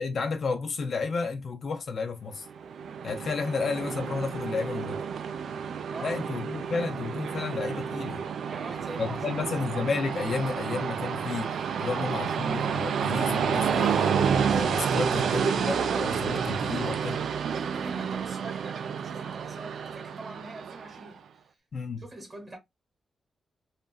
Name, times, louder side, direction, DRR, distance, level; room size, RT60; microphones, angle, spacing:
voice 1, 0.0-2.5 3.0-5.0 6.0-8.2 9.0-17.2 21.7-22.1, left 4 dB, 50° left, 0.4 m, -32 dB
Train, 2.5-21.1, right 7 dB, 75° right, 0.3 m, -30 dB
voice 2, 5.9-6.4 8.5-9.4 17.6-21.6 22.0-22.6, right 2 dB, 25° right, 1.0 m, -44 dB
2.8 x 2.5 x 2.2 m
wide cardioid pair, 170°, 0 cm